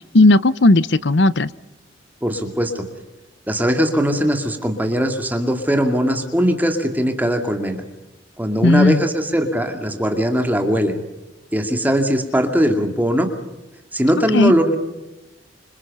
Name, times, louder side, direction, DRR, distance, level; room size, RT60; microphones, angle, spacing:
voice 1, 0.0-1.5 8.6-9.0 14.3-14.5, left 2 dB, 65° left, 17 dB, 0.8 m, -14 dB
voice 2, 2.2-2.8 3.5-7.8 8.4-11.0 11.5-13.3 13.9-14.8, equal, 10° right, 5 dB, 2.4 m, -20 dB
28.0 x 26.5 x 5.5 m, 1.0 s
head